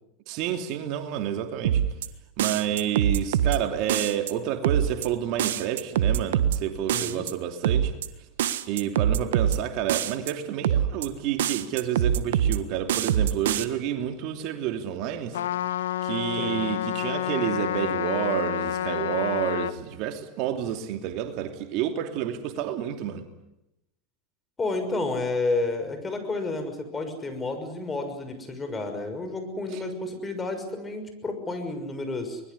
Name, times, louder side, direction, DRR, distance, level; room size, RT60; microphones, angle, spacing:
voice 1, 0.3-1.8 2.4-7.9 8.7-15.4 16.0-23.2 29.7-29.8, right 10 dB, 60° right, 2.8 m, -29 dB
sound 1, 1.6-2.1 2.4-3.6 3.9-4.3 4.6-5.1 5.4-6.6 6.9-7.3 7.6-8.1 8.4-9.6 9.9-10.3 10.6-11.1 11.4-12.6 12.9-13.6, right 10 dB, 80° right, 1.4 m, -24 dB
voice 2, 6.9-7.2 16.4-16.6 24.6-32.4, left 2 dB, 20° left, 6.3 m, -30 dB
Trumpet, 15.3-19.8, left 10 dB, 85° left, 1.3 m, -29 dB
24.0 x 21.0 x 9.8 m
hypercardioid pair, 95°, 0 cm